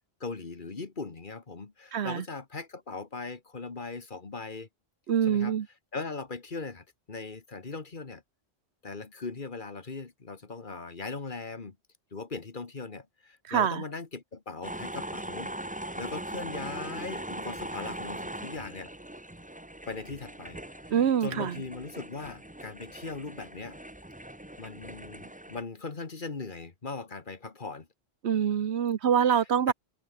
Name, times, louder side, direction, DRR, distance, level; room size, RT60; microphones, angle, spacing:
voice 1, 0.2-4.7 5.2-5.6 5.9-8.2 8.8-11.8 12.1-15.5 16.0-18.9 19.9-20.6 20.9-23.8 24.6-27.9 29.3-29.7, left 4 dB, 50° left, 1.8 m, -39 dB
voice 2, 1.9-2.2 5.1-5.7 13.5-13.8 20.9-21.6 28.2-29.7, right 8 dB, 80° right, 1.2 m, -25 dB
sound 1, 14.6-25.6, right 1 dB, 5° right, 1.1 m, -40 dB
omnidirectional pair, 1.1 m